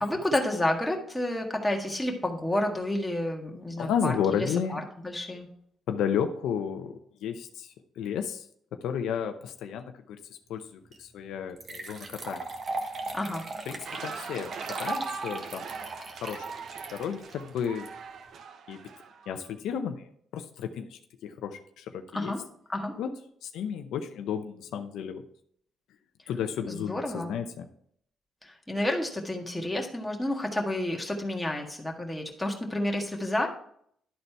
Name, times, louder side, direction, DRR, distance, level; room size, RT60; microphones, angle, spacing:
voice 1, 0.0-5.5 13.1-13.5 22.1-22.4 22.7-23.0 26.7-27.3 28.4-33.5, left 1 dB, 10° left, 0 dB, 1.6 m, -30 dB
voice 2, 3.8-4.8 5.9-8.5 8.8-12.4 13.7-14.5 14.8-15.7 16.2-16.5 16.9-17.9 18.7-18.8 19.3-22.3 23.0-23.1 23.4-25.2 26.3-27.7, left 8 dB, 85° left, 7 dB, 0.6 m, -32 dB
sound 1, 10.9-11.0 11.6-17.9, right 3 dB, 45° right, 1.3 m, -37 dB
sound 2, 13.8-19.5, right 5 dB, 65° right, 0.7 m, -41 dB
11.5 x 4.1 x 4.5 m, 0.66 s
cardioid pair, 90°, 0 cm